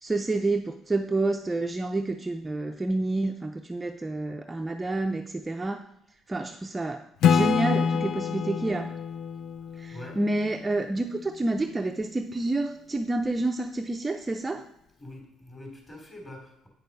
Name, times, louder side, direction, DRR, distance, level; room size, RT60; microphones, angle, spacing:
voice 1, 0.0-5.8 6.3-7.0 7.3-8.9 9.8-14.6, right 2 dB, 15° right, 4 dB, 0.5 m, -29 dB
Acoustic guitar / Strum, 7.2-10.8, left 7 dB, 65° left, 0.4 m, -26 dB
voice 2, 9.9-10.2 12.4-12.5 15.0-16.7, left 1 dB, 25° left, 1 dB, 3.1 m, -44 dB
8.8 x 6.5 x 5.3 m, 0.77 s
cardioid pair, 130°, 0 cm